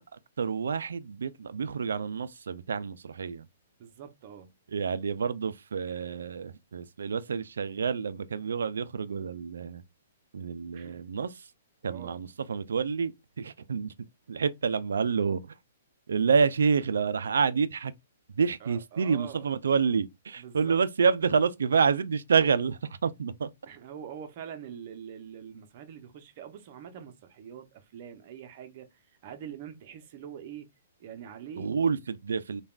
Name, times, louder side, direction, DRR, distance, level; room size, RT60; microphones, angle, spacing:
voice 1, 0.0-3.5 4.7-9.8 10.3-11.5 11.8-13.9 14.3-15.6 16.1-17.9 18.3-23.5 31.6-32.6, right 5 dB, 85° right, 0.3 m, -28 dB
voice 2, 3.8-4.5 5.9-6.0 10.7-11.0 11.8-12.2 18.6-19.4 20.4-20.8 23.7-28.9 29.2-30.7 31.0-31.9, right 8 dB, 45° right, 0.6 m, -44 dB
3.3 x 2.3 x 2.3 m
hypercardioid pair, 140°, 0 cm